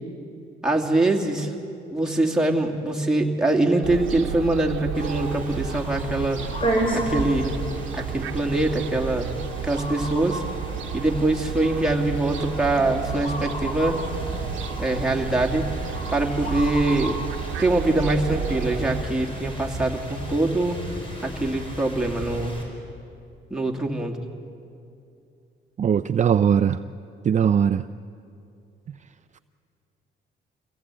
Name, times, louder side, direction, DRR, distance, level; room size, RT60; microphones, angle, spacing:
voice 1, 0.6-1.5 1.9-6.4 6.9-7.6 7.9-9.3 9.6-10.4 10.9-14.0 14.8-15.7 16.1-17.2 17.6-20.8 21.2-22.6 23.5-24.2, right 2 dB, 5° right, -1 dB, 2.5 m, -23 dB
Fowl, 3.8-19.0, right 9 dB, 75° right, 1.1 m, -32 dB
sound 1, 4.9-22.6, equal, 25° left, 5.6 m, -33 dB
voice 2, 25.8-26.8 27.3-27.8, right 8 dB, 35° right, 10 dB, 0.5 m, -20 dB
25.0 x 17.0 x 8.5 m, 2.6 s
cardioid pair, 90°, 20 cm